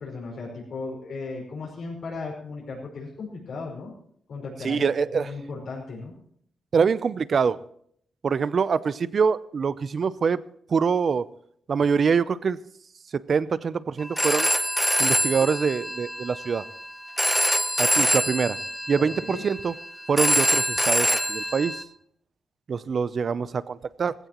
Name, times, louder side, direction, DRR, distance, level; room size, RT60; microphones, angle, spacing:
voice 1, 0.0-3.9 4.3-6.1 17.5-17.8 19.2-19.4, left 3 dB, 60° left, -4 dB, 5.2 m, -36 dB
voice 2, 4.6-5.3 6.7-7.6 8.2-10.4 10.7-11.2 11.7-12.6 13.1-14.5 15.0-16.6 17.8-18.6 18.9-19.7 20.1-21.8 22.7-24.1, right 6 dB, 40° right, 16 dB, 0.6 m, -24 dB
Telephone, 14.0-21.8, equal, ahead, 0.8 m, -25 dB
18.0 x 16.5 x 3.0 m, 0.65 s
wide cardioid pair, 150°, 0 cm